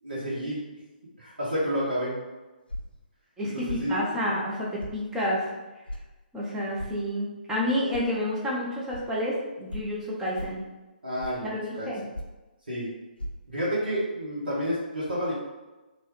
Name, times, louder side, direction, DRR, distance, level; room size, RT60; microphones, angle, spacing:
voice 1, 0.0-0.6 1.2-2.1 3.5-4.1 11.0-11.9 12.7-12.9 13.5-15.3, equal, 70° right, -9 dB, 1.1 m, -30 dB
sound 1, 2.7-3.0 3.7-3.9 4.8-5.0 5.9-6.0 6.8-7.0 7.9-8.1 8.9-9.0 9.7-9.9 10.3-10.6 11.2-11.5 12.1-12.4 13.2-13.3, equal, 75° left, 0.4 m, -36 dB
voice 2, 3.4-5.4 6.3-10.6 11.4-12.0, left 1 dB, 10° right, -5 dB, 0.6 m, -29 dB
3.0 x 2.3 x 3.0 m, 1.1 s
figure-of-eight pair, 135°, 5 cm